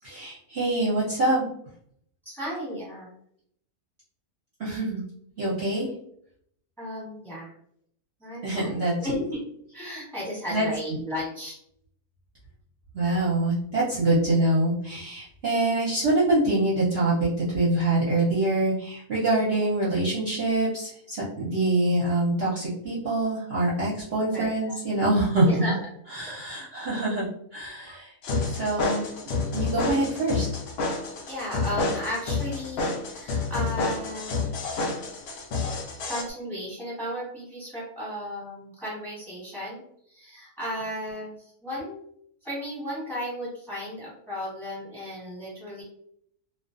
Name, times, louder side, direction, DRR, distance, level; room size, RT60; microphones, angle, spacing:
voice 1, 0.0-1.4 4.6-5.0 5.4-5.9 8.4-8.9 10.5-10.7 12.9-25.7 26.1-28.1 28.5-29.1 29.5-30.5, right 2 dB, 50° right, -8 dB, 0.8 m, -25 dB
voice 2, 2.2-3.1 6.8-7.5 8.2-9.4 9.7-11.6 24.3-24.8 25.5-25.8 31.3-34.5 36.1-39.8 40.1-41.4 41.6-42.0 42.4-45.8, equal, ahead, -6 dB, 1.0 m, -34 dB
sound 1, 28.2-36.2, left 3 dB, 70° left, 0.6 m, -29 dB
2.4 x 2.4 x 2.5 m, 0.68 s
omnidirectional pair, 1.6 m